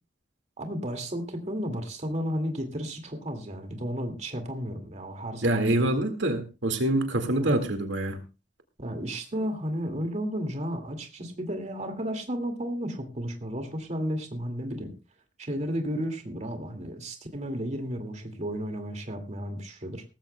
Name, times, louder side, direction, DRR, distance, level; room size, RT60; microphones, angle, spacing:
voice 1, 0.6-5.9 7.4-7.5 8.8-14.9 15.4-20.0, equal, 40° right, 5 dB, 2.2 m, -33 dB
voice 2, 5.4-8.2, right 1 dB, 80° right, 7 dB, 2.0 m, -25 dB
18.5 x 14.5 x 2.2 m, 0.29 s
head